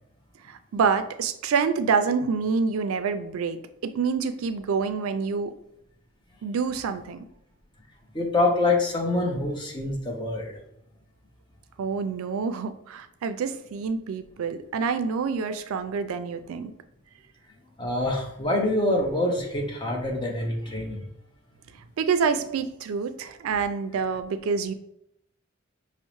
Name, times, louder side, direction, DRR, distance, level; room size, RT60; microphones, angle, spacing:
voice 1, 0.5-5.5 6.4-7.2 11.8-16.7 22.0-24.7, right 5 dB, 90° right, 10 dB, 0.4 m, -27 dB
voice 2, 8.1-10.6 17.8-21.1, left 2 dB, 20° left, 0 dB, 0.6 m, -25 dB
5.2 x 2.0 x 3.0 m, 0.76 s
head